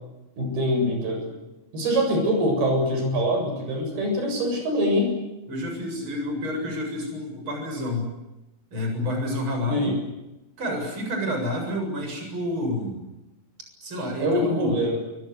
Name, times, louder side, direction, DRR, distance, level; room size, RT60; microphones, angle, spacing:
voice 1, 0.4-1.3 1.7-5.1 9.7-9.9 14.2-15.0, equal, 85° right, 3 dB, 9.6 m, -24 dB
voice 2, 5.5-8.1 8.7-10.0 10.6-13.0 13.8-14.8, left 1 dB, 30° right, 3 dB, 8.3 m, -29 dB
27.0 x 25.0 x 8.1 m, 0.98 s
omnidirectional pair, 4.4 m